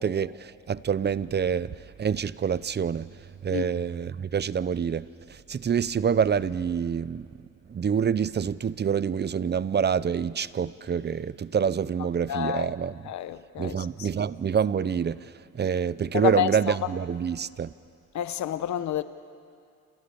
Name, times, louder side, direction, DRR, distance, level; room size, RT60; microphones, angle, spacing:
voice 1, 0.0-1.7 2.0-3.1 3.4-5.0 5.3-7.3 7.7-13.0 13.6-17.7, right 7 dB, 35° right, 0.7 m, -27 dB
voice 2, 12.0-12.7 13.0-14.1 16.1-17.0 18.1-19.0, left 11 dB, 70° left, 1.1 m, -29 dB
29.0 x 28.0 x 7.0 m
cardioid pair, 90°, 30 cm